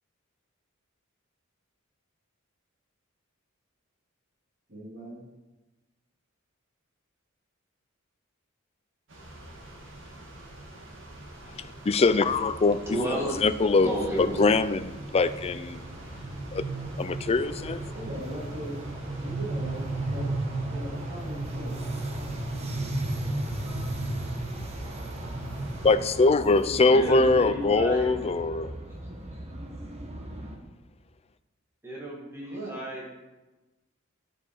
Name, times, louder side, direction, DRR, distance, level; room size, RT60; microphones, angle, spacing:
voice 1, 4.7-5.2 17.9-18.8 19.2-21.8 25.9-28.3 32.5-32.8, equal, 50° right, 3.1 m, -40 dB
sound 1, 9.1-26.0, right 2 dB, 65° right, 2.3 m, -35 dB
voice 2, 11.9-12.8 13.4-13.9 14.4-15.8 16.5-16.7 17.0-17.8 25.8-28.7, left 3 dB, 30° left, 0.4 m, -22 dB
sound 2, 12.7-30.6, right 1 dB, 30° right, 1.2 m, -42 dB
voice 3, 12.9-14.4 26.9-28.1 29.3-29.4 31.8-33.3, equal, 15° right, 1.8 m, -32 dB
11.5 x 8.0 x 4.7 m
head